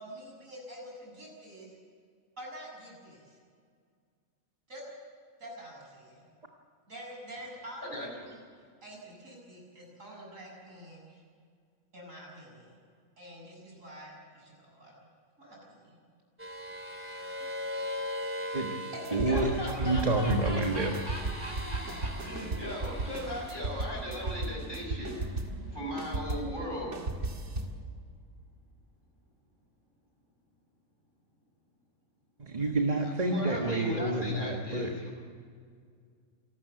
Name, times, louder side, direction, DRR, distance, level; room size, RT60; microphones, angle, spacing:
voice 1, 0.0-1.7 2.4-3.4 4.7-4.8 5.4-6.2 6.9-8.4 8.8-11.2 11.9-12.7 13.2-15.1 15.4-16.0 18.9-19.5 19.8-19.9, right 1 dB, 80° right, -2 dB, 7.5 m, -46 dB
voice 2, 7.8-8.2 19.3-25.2 25.7-27.0 33.0-35.1, equal, 40° left, 0 dB, 6.5 m, -38 dB
sound 1, 16.4-27.2, left 1 dB, 10° right, 2.8 m, -41 dB
sound 2, 19.0-25.7 26.0-27.8, right 2 dB, 60° right, 2.3 m, -36 dB
voice 3, 19.1-19.5 19.8-20.9 32.4-34.9, right 2 dB, 30° right, 2 dB, 1.7 m, -28 dB
27.0 x 13.5 x 8.4 m, 2.1 s
omnidirectional pair, 1.4 m